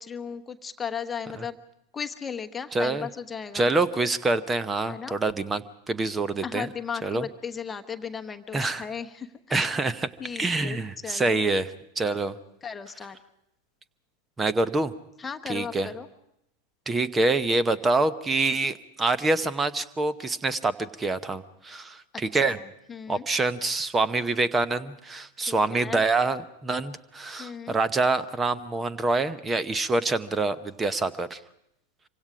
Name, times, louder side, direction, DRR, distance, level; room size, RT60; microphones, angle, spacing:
voice 1, 0.0-1.6 1.9-3.7 4.9-5.2 6.4-9.7 10.2-10.8 11.0-11.4 12.6-13.2 15.2-16.1 22.3-22.4 22.9-23.2 25.4-26.0 27.4-27.8, left 7 dB, 15° left, 6 dB, 1.1 m, -36 dB
voice 2, 2.7-3.1 3.5-6.7 7.0-7.3 8.5-8.9 9.5-10.1 10.4-12.4 14.4-14.9 15.5-15.9 16.9-22.6 23.1-31.4, right 3 dB, 15° right, 16 dB, 0.9 m, -26 dB
26.0 x 24.5 x 5.0 m, 0.81 s
figure-of-eight pair, 90°, 0 cm